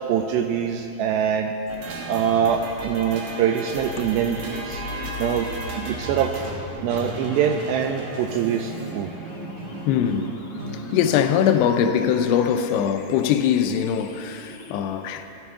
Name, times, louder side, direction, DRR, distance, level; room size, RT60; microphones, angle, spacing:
voice 1, 0.0-1.5 2.1-4.8 5.2-5.5 5.8-6.3 6.8-9.1, right 8 dB, 85° right, 2.2 m, -24 dB
sound 1, 1.7-12.3, right 2 dB, 65° right, 2.9 m, -35 dB
sound 2, 4.7-14.7, left 1 dB, 75° left, 1.7 m, -40 dB
voice 2, 9.9-10.3 10.9-15.3, left 8 dB, 90° left, 2.7 m, -22 dB
14.0 x 12.5 x 3.6 m
omnidirectional pair, 4.7 m